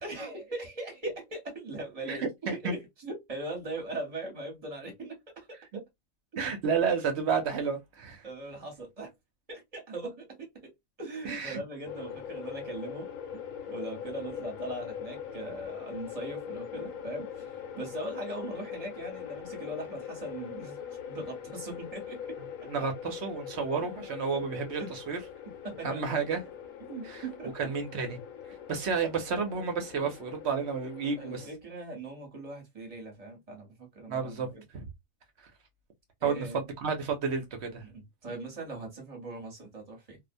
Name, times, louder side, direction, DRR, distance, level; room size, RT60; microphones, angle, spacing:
voice 1, 0.0-5.6 8.2-9.1 9.5-20.8 21.1-22.7 23.8-23.9 24.6-25.0 25.6-26.2 26.8-27.7 31.2-34.6 36.2-36.7 37.8-40.2, right 2 dB, 30° right, 0.9 m, -40 dB
voice 2, 2.1-2.8 5.7-5.8 6.4-8.2 11.2-11.6 22.7-25.2 25.8-26.4 27.0-27.2 27.6-28.2 28.5-31.5 34.1-34.5 34.7-34.9 36.2-37.8, right 5 dB, 60° right, 0.8 m, -31 dB
sound 1, 11.8-31.5, left 8 dB, 75° left, 0.9 m, -42 dB
2.4 x 2.1 x 2.5 m
omnidirectional pair, 1.4 m